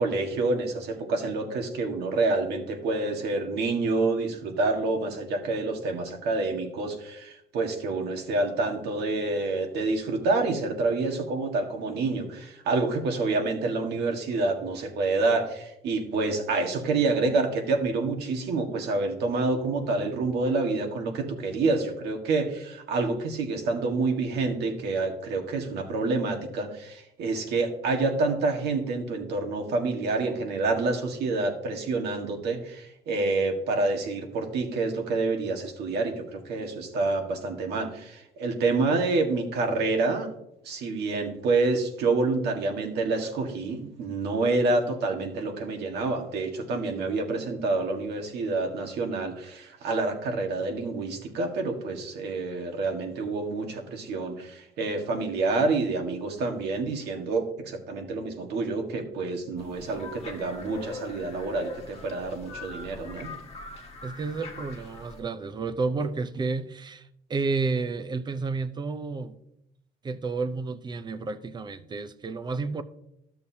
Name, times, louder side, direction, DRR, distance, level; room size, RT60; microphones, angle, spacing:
voice 1, 0.0-40.3 40.6-63.3, right 3 dB, 75° right, 1.7 m, -28 dB
sound 1, 59.6-65.2, left 3 dB, 40° left, 1.6 m, -42 dB
voice 2, 64.0-69.4 70.0-72.8, right 4 dB, 25° right, 0.6 m, -31 dB
13.0 x 6.8 x 2.8 m
cardioid pair, 110°, 17 cm